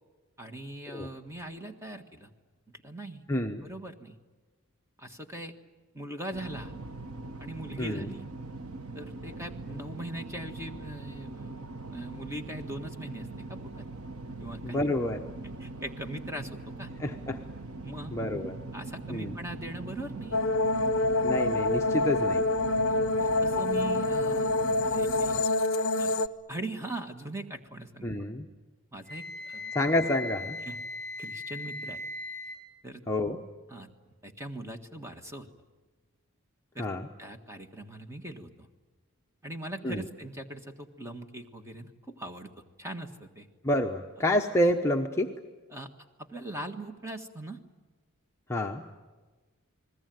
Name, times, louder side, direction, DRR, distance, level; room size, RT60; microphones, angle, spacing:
voice 1, 0.4-2.3 2.7-3.2 3.6-4.2 5.0-5.5 5.9-6.7 7.4-8.2 8.9-13.9 14.4-14.8 15.6-16.9 17.8-18.2 18.7-20.4 22.9-25.4 26.0-26.2 26.5-28.1 28.9-29.7 30.6-30.8 31.2-32.0 32.8-33.0 33.7-33.9 34.2-35.5 36.7-36.9 37.2-38.7 39.4-42.5 42.8-43.5 44.2-44.3 45.7-45.9 46.2-47.6, right 1 dB, 10° right, 6 dB, 1.6 m, -41 dB
voice 2, 3.3-3.6 7.8-8.1 14.6-15.3 17.0-17.4 18.1-18.6 19.1-19.3 21.2-22.4 28.0-28.5 29.7-30.6 33.1-33.4 36.8-37.1 39.8-40.0 43.6-45.3 48.5-48.9, left 1 dB, 10° left, 1 dB, 0.9 m, -28 dB
sound 1, 6.3-25.4, right 3 dB, 80° right, 1.3 m, -41 dB
sound 2, 20.3-26.3, left 2 dB, 60° left, 0.9 m, -26 dB
Wind instrument woodwind instrument, 29.1-32.6, left 2 dB, 40° right, 4.8 m, -38 dB
30.0 x 21.0 x 9.3 m, 1.3 s
head